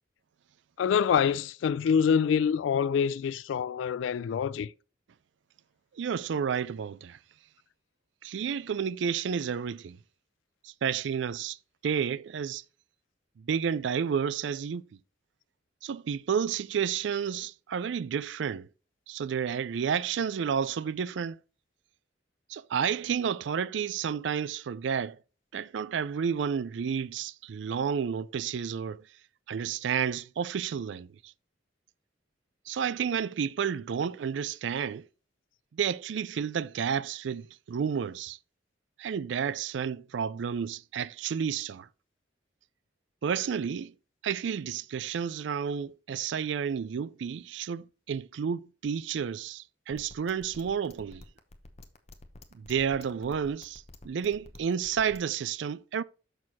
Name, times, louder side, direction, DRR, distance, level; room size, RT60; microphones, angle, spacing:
voice 1, 0.8-4.7, left 7 dB, 80° left, 0.3 m, -26 dB
voice 2, 6.0-7.2 8.2-10.0 10.6-11.6 11.8-12.6 13.4-14.8 15.8-18.7 19.1-21.4 22.5-25.2 25.5-29.0 29.5-31.1 32.7-35.0 35.7-38.4 39.0-41.9 43.2-43.9 44.2-51.2 52.5-56.0, right 7 dB, 70° right, 0.4 m, -31 dB
sound 1, 49.9-55.3, left 2 dB, 35° left, 0.8 m, -49 dB
6.4 x 6.3 x 4.1 m
head